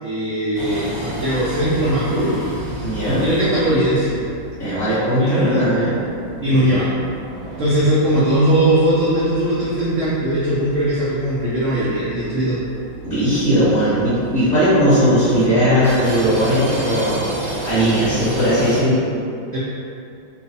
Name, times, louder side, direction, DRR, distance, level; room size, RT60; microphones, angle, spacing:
voice 1, 0.0-2.4 3.1-4.2 5.2-5.7 6.4-6.9 7.6-12.6 19.5-19.6, right 1 dB, 85° right, -9 dB, 0.6 m, -19 dB
sound 1, 0.5-18.8, right 1 dB, 40° left, 0.5 m, -33 dB
voice 2, 2.8-3.3 4.6-6.0 6.5-6.8 13.0-17.2 17.6-19.0, equal, 30° right, -15 dB, 1.0 m, -18 dB
3.2 x 2.1 x 3.9 m, 2.5 s
omnidirectional pair, 2.1 m